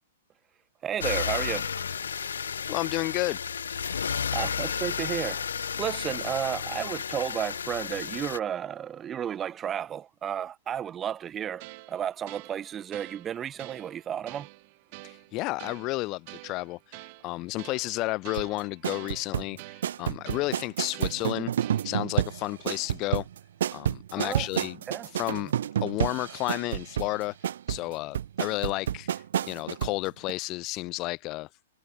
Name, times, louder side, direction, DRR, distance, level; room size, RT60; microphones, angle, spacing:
voice 1, 0.8-1.7 4.3-14.5 24.2-24.5 24.9-25.1, right 9 dB, 20° right, 2.1 m, -33 dB
sound 1, 1.0-8.4, left 7 dB, 90° left, 1.3 m, -32 dB
voice 2, 2.7-3.4 15.0-21.5 21.8-23.3 23.7-24.8 25.1-25.5 25.8-27.4 27.7-31.5, left 21 dB, 35° left, 0.6 m, -32 dB
sound 2, 11.6-22.2, right 27 dB, 45° right, 6.5 m, -48 dB
sound 3, 18.3-30.0 30.3-30.4, right 10 dB, 70° right, 0.4 m, -30 dB
hypercardioid pair, 140°, 0 cm